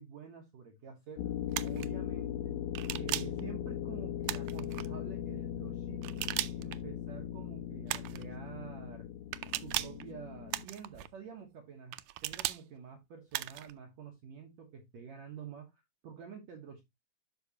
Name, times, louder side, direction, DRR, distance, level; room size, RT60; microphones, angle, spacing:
voice 1, 0.0-1.3 1.6-2.6 2.9-6.3 6.6-9.1 9.6-16.8, right 7 dB, 60° right, 2.2 m, -48 dB
sound 1, 1.2-10.7, left 10 dB, 85° left, 2.3 m, -39 dB
sound 2, 1.5-1.9 2.7-3.4 4.2-4.9 6.0-6.8 7.9-8.3 9.3-10.0 10.5-11.1 11.9-12.6 13.3-13.7, right 16 dB, 80° right, 1.9 m, -36 dB
12.0 x 4.8 x 2.8 m
omnidirectional pair, 4.0 m